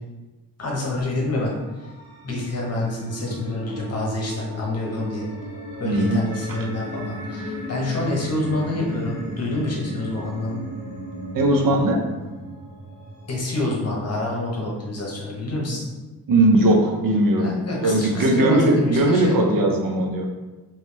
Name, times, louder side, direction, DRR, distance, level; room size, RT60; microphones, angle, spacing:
voice 1, 0.6-1.5 1.8-1.9 2.2-5.2 5.8-10.6 13.3-15.8 17.4-19.4, left 2 dB, 40° left, -3 dB, 0.9 m, -27 dB
sound 1, 1.5-13.5, equal, 25° right, 1.5 m, -36 dB
voice 2, 5.8-6.2 6.5-6.6 11.3-12.1 16.3-20.3, right 1 dB, 60° right, 2 dB, 0.5 m, -19 dB
3.1 x 3.0 x 3.3 m, 1.2 s
wide cardioid pair, 165°, 39 cm